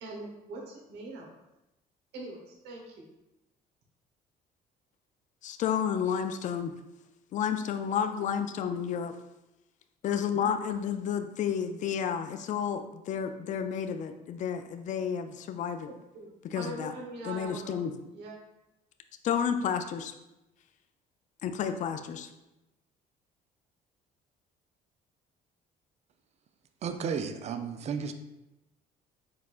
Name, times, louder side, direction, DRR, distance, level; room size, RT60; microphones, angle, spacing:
voice 1, 0.0-1.3 2.1-3.0 8.0-8.1 15.9-17.8 18.1-18.3, right 2 dB, 85° right, -1 dB, 1.0 m, -42 dB
voice 2, 5.4-6.7 7.3-9.2 10.0-15.9 16.5-16.9 17.2-17.9 19.2-20.1 21.4-22.3, left 8 dB, 45° left, 8 dB, 0.4 m, -31 dB
voice 3, 26.8-28.1, right 6 dB, 40° right, 8 dB, 0.4 m, -33 dB
4.3 x 4.2 x 2.4 m, 0.95 s
cardioid pair, 110°, 17 cm